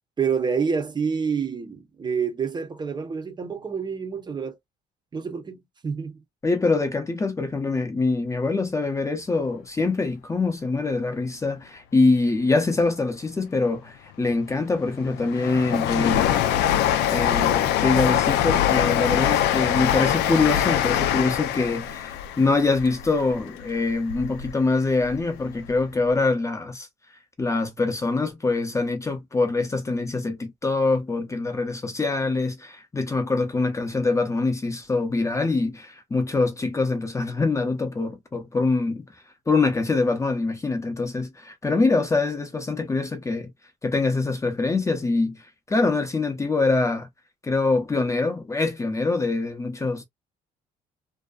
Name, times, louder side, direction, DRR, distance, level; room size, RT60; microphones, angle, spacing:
voice 1, 0.2-4.6 5.1-6.2, right 6 dB, 25° right, 0.7 m, -28 dB
voice 2, 6.4-16.4 17.1-26.9 27.4-39.1 39.5-43.5 43.8-47.1 47.4-50.0, left 3 dB, 20° left, 0.6 m, -24 dB
Train, 14.3-24.5 24.9-25.8 26.1-26.2, left 11 dB, 80° left, 0.4 m, -24 dB
2.6 x 2.2 x 2.3 m
cardioid pair, 110°, 17 cm